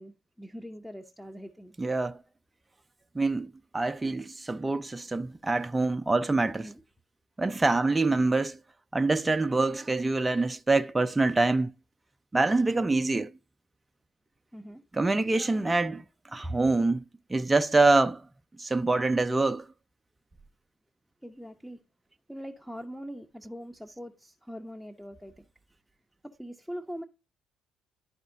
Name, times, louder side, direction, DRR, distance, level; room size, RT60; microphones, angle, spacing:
voice 1, 0.0-1.7 6.6-6.8 8.2-8.3 14.5-14.8 21.2-21.8 22.3-25.5 26.2-27.0, equal, ahead, 0.8 m, -42 dB
voice 2, 1.8-2.2 3.2-6.7 7.4-8.6 8.9-11.7 12.3-13.3 14.9-16.0 16.3-17.0 17.3-18.2 18.6-19.7, right 3 dB, 20° right, 0.5 m, -25 dB
11.5 x 4.3 x 2.6 m
hypercardioid pair, 50°, 0 cm